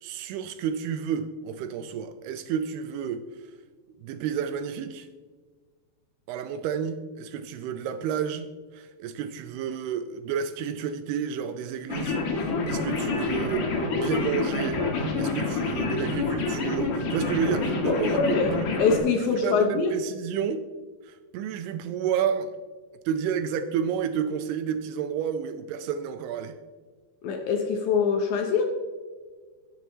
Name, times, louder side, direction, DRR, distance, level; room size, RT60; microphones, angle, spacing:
voice 1, 0.0-3.2 4.0-5.1 6.3-18.6 19.1-20.6 21.0-22.5 23.1-26.6, right 8 dB, 85° right, 9 dB, 2.4 m, -31 dB
sound 1, 11.9-19.0, left 3 dB, 60° left, 2.8 m, -27 dB
voice 2, 17.9-18.5 18.8-19.9 27.2-28.6, left 5 dB, 75° left, 3 dB, 2.2 m, -24 dB
17.5 x 6.8 x 3.1 m, 1.5 s
omnidirectional pair, 4.9 m